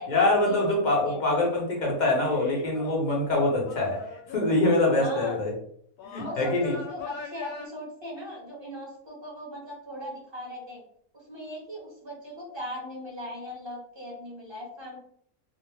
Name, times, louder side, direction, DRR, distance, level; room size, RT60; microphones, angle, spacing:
voice 1, 0.1-4.0 4.3-5.5 6.0-6.7, left 2 dB, 40° left, -2 dB, 0.7 m, -24 dB
voice 2, 0.9-1.2 5.0-5.4 6.2-10.8 11.1-15.0, left 1 dB, 25° right, -4 dB, 0.9 m, -39 dB
sound 1, 1.4-1.7 2.2-5.0 6.0-7.7, left 5 dB, 80° left, 1.0 m, -42 dB
2.5 x 2.1 x 3.2 m, 0.64 s
omnidirectional pair, 1.5 m